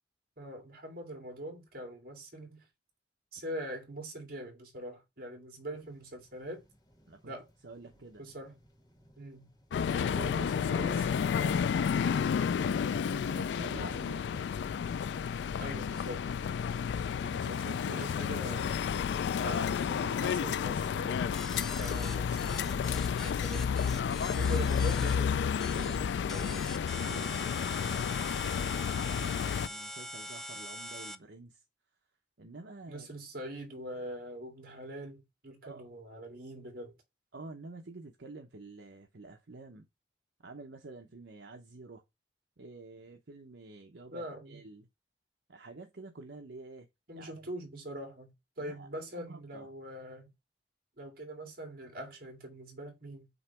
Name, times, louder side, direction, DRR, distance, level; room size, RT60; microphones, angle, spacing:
voice 1, 0.4-2.6 3.3-6.6 7.3-7.5 8.2-8.6 9.2-9.5 9.9-11.1 11.9-12.2 15.6-16.3 17.2-18.9 19.4-21.4 21.7-23.7 24.3-25.4 25.8-26.6 32.9-36.9 44.1-44.6 47.1-50.3 51.0-53.3, right 1 dB, 55° right, 2.2 m, -43 dB
sound 1, 5.7-13.8, equal, 25° left, 1.8 m, -57 dB
voice 2, 7.6-8.2 9.8-11.0 11.4-12.1 12.5-14.5 17.2-17.6 19.5-19.6 22.2-22.4 27.0-31.6 32.4-33.1 35.6-35.8 37.3-39.9 40.4-42.0 42.6-44.9 45.5-46.9 47.2-47.3 48.6-49.7, right 3 dB, 75° right, 0.8 m, -49 dB
sound 2, 9.7-29.7, left 7 dB, 75° left, 0.3 m, -31 dB
sound 3, 21.3-25.2 25.6-26.0 26.3-31.2, equal, 5° left, 0.5 m, -43 dB
8.0 x 3.0 x 4.5 m
head